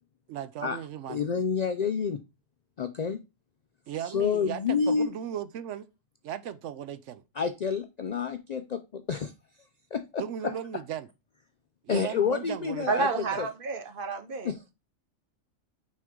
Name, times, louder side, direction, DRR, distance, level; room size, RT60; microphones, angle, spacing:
voice 1, 0.3-1.3 3.9-5.9 6.2-7.2 10.2-11.1 11.8-13.4, right 10 dB, 75° right, 0.9 m, -36 dB
voice 2, 1.1-2.2 2.8-3.2 4.0-5.1 7.4-9.3 9.9-10.5 11.9-13.1 13.4-13.5 14.4-14.6, left 6 dB, 70° left, 0.4 m, -29 dB
voice 3, 12.9-14.6, right 4 dB, 50° right, 1.0 m, -30 dB
6.2 x 4.5 x 3.6 m
omnidirectional pair, 1.3 m